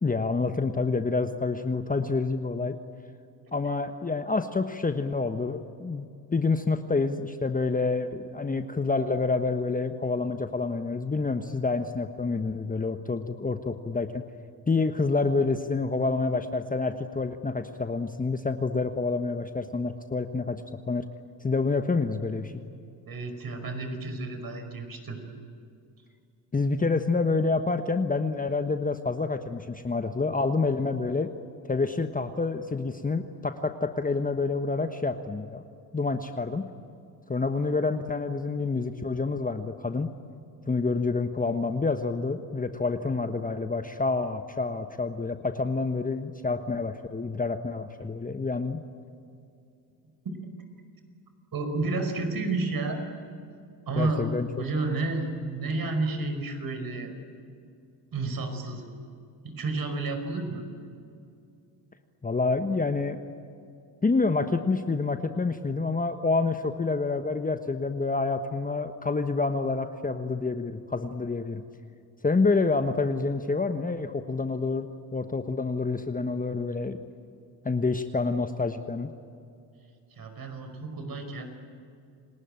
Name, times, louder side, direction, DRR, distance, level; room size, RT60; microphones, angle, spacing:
voice 1, 0.0-2.8 3.5-6.1 6.3-14.2 14.7-20.6 20.9-21.0 21.4-22.6 26.5-31.3 31.7-35.6 35.9-36.6 37.3-40.1 40.7-48.8 54.0-54.5 62.2-63.2 64.0-71.6 72.2-77.0 77.6-79.1, left 3 dB, 15° left, 8 dB, 1.3 m, -28 dB
voice 2, 23.0-25.2 50.2-50.4 51.5-53.0 53.9-54.3 54.6-57.1 58.1-58.8 59.4-60.6 80.1-81.5, right 3 dB, 45° right, 6 dB, 5.3 m, -31 dB
29.0 x 19.0 x 9.0 m, 2.5 s
hypercardioid pair, 60°, 50 cm